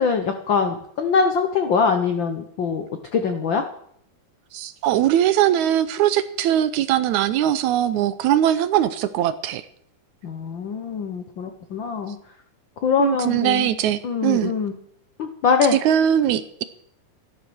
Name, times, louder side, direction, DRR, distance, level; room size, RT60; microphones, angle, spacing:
voice 1, 0.0-2.8 3.1-3.6 10.2-12.2 12.8-13.7 14.0-14.7 15.2-15.8, left 5 dB, 80° left, 7 dB, 1.0 m, -23 dB
voice 2, 4.5-9.7 13.0-14.5 15.7-16.6, right 11 dB, 75° right, 13 dB, 1.9 m, -21 dB
14.0 x 12.0 x 6.2 m, 0.68 s
omnidirectional pair, 3.7 m